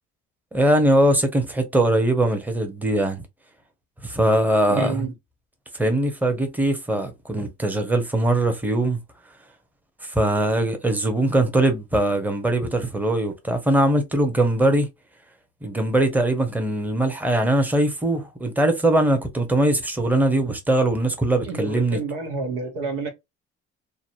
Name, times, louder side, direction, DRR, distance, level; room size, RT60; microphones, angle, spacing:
voice 1, 0.5-3.2 4.0-5.1 5.7-9.0 10.0-14.9 15.6-22.0, right 1 dB, 5° right, 0.9 m, -21 dB
voice 2, 4.7-5.1 21.4-23.1, right 4 dB, 85° right, 1.2 m, -28 dB
2.7 x 2.1 x 2.6 m
hypercardioid pair, 60°, 32 cm